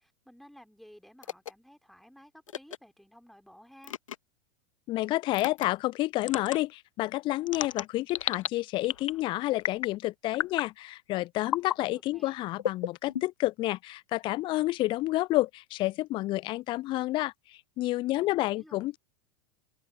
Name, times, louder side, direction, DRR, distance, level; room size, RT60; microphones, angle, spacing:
voice 1, 0.0-4.0 11.9-12.4 18.2-18.9, equal, ahead, 4.1 m, -55 dB
sound 1, 1.2-1.5 2.5-2.8 3.8-4.2 5.3-5.7 6.2-6.6 7.5-8.5 8.8-9.2 9.6-10.0 10.3-10.7 11.4-11.8 12.6-13.5, left 9 dB, 70° left, 1.0 m, -33 dB
voice 2, 4.9-19.0, left 17 dB, 30° left, 0.4 m, -30 dB
open air
figure-of-eight pair, 90°, 17 cm